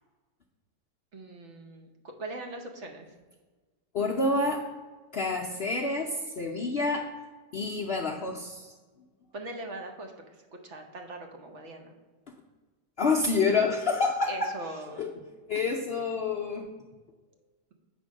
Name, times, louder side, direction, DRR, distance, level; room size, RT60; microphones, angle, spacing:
voice 1, 1.1-3.1 9.3-10.1 10.5-12.0 14.3-15.1, right 2 dB, 50° right, 3 dB, 1.1 m, -41 dB
voice 2, 3.9-4.6 5.1-7.1 7.5-8.7 13.0-14.5 15.0-15.1 15.5-16.7, left 3 dB, 70° left, 0 dB, 0.5 m, -28 dB
8.3 x 3.6 x 6.2 m, 1.3 s
omnidirectional pair, 1.9 m